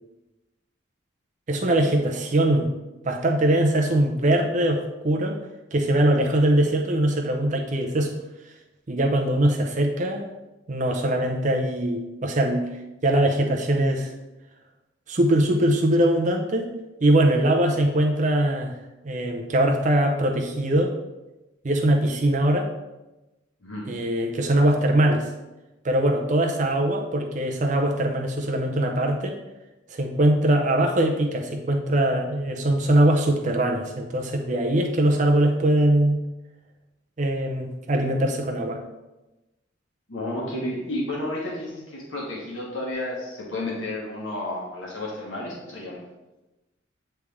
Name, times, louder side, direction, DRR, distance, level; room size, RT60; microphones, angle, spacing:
voice 1, 1.5-2.7 3.0-5.4 5.7-8.1 8.9-10.3 10.7-12.7 13.0-14.1 15.1-18.8 19.0-20.9 21.6-22.7 23.9-25.3 25.8-29.4 29.9-36.2 37.2-38.8, right 1 dB, 40° right, 2 dB, 0.5 m, -22 dB
voice 2, 40.1-46.0, left 1 dB, 75° left, -4 dB, 1.4 m, -31 dB
8.2 x 3.3 x 3.5 m, 1.0 s
head